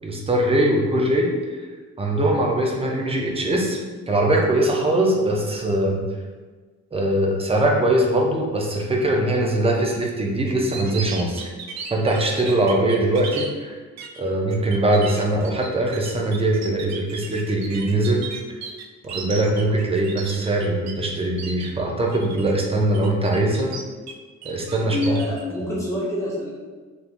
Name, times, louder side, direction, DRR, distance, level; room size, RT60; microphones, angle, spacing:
voice 1, 0.0-1.3 2.0-3.8 4.1-6.0 6.9-11.4 11.9-13.7 14.2-18.2 19.0-23.7 24.4-25.2, right 1 dB, 20° right, 0 dB, 0.6 m, -21 dB
sound 1, 10.5-13.5 14.0-14.2 14.5-20.9 21.2-21.7 22.1-22.5 22.9-24.1 24.4-25.4, right 5 dB, 60° right, 0.5 m, -36 dB
voice 2, 24.8-26.5, left 1 dB, 10° left, -7 dB, 1.1 m, -26 dB
3.6 x 2.7 x 2.5 m, 1.4 s
cardioid pair, 90°, 30 cm